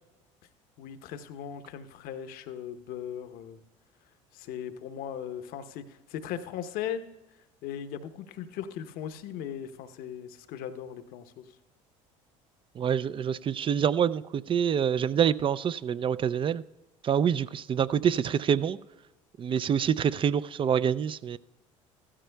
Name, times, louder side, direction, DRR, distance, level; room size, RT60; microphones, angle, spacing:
voice 1, 0.8-3.6 4.3-7.0 7.6-11.6, left 9 dB, 60° left, 0.9 m, -38 dB
voice 2, 12.8-16.6 17.0-18.8 19.4-21.4, right 8 dB, 30° right, 0.4 m, -26 dB
15.5 x 13.5 x 2.3 m
hypercardioid pair, 70°, 17 cm